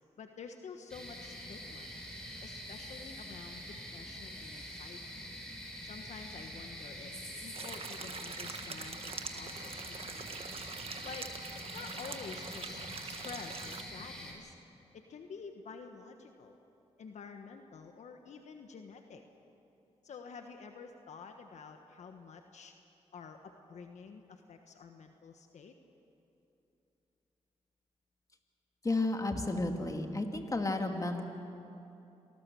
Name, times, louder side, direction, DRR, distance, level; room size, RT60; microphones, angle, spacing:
voice 1, 0.2-1.9 2.4-5.2 5.8-7.1 7.4-10.4 11.0-11.3 11.7-14.5 14.9-16.6 17.0-19.2 20.0-22.7 23.1-25.7, left 5 dB, 75° left, 5 dB, 1.4 m, -49 dB
sound 1, 0.9-14.3, equal, 5° left, 6.2 m, -45 dB
sound 2, 7.5-13.8, right 5 dB, 55° right, 1.5 m, -44 dB
voice 2, 28.8-31.2, left 2 dB, 30° left, 4 dB, 2.6 m, -32 dB
27.0 x 19.0 x 7.1 m, 2.8 s
cardioid pair, 65°, 12 cm